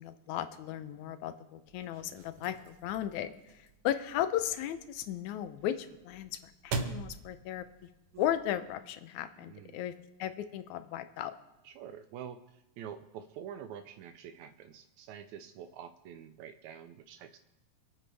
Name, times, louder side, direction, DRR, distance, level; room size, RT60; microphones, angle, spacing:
voice 1, 0.0-7.6 8.2-9.9 10.2-11.3, left 11 dB, 75° left, 11 dB, 1.8 m, -36 dB
sound 1, 1.7-8.7, right 4 dB, 60° right, 1.5 m, -43 dB
voice 2, 9.4-9.8 11.6-17.4, right 9 dB, 85° right, 8 dB, 1.6 m, -47 dB
27.0 x 9.0 x 3.4 m, 0.97 s
omnidirectional pair, 4.0 m